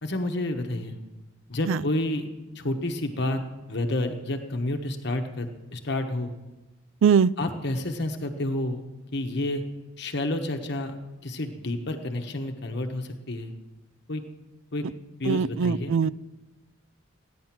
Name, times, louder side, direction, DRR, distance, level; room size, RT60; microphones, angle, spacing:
voice 1, 0.0-1.0 1.5-2.3 2.5-3.4 3.7-6.3 7.4-8.8 9.1-9.6 10.0-10.9 11.2-13.5 14.1-14.2 14.7-14.8 15.2-16.0, left 1 dB, 55° left, 5 dB, 1.2 m, -29 dB
voice 2, 7.0-7.3 15.3-16.1, right 6 dB, 70° right, 17 dB, 0.4 m, -21 dB
15.5 x 10.5 x 6.0 m, 1.1 s
head